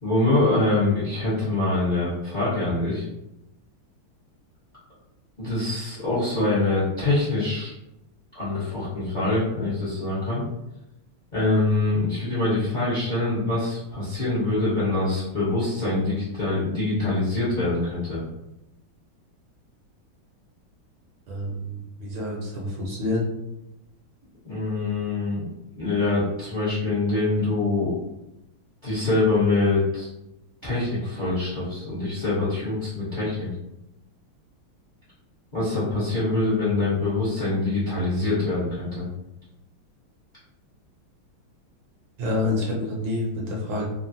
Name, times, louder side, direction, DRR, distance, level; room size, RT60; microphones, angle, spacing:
voice 1, 0.0-3.0 5.4-7.7 8.3-10.4 11.3-18.2 24.4-25.4 25.8-28.0 28.8-30.1 30.6-33.5 35.5-39.1, left 2 dB, 40° left, -10 dB, 0.7 m, -24 dB
voice 2, 21.3-23.3 42.2-43.8, left 2 dB, 70° right, -3 dB, 1.3 m, -28 dB
3.6 x 2.0 x 2.6 m, 0.89 s
omnidirectional pair, 2.3 m